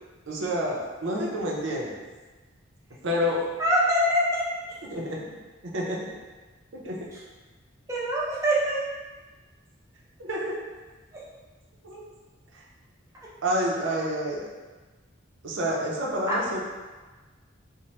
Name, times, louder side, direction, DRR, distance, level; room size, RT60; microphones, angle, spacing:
voice 1, 0.3-2.0 3.0-3.4 4.9-5.2 5.6-6.1 6.7-7.0 10.2-10.6 11.8-12.1 13.4-14.5 15.4-16.6, equal, 70° right, -3 dB, 0.5 m, -28 dB
voice 2, 3.6-4.4 7.9-8.8 16.2-16.4, equal, 15° right, -6 dB, 0.5 m, -23 dB
3.1 x 2.1 x 2.8 m, 1.3 s
head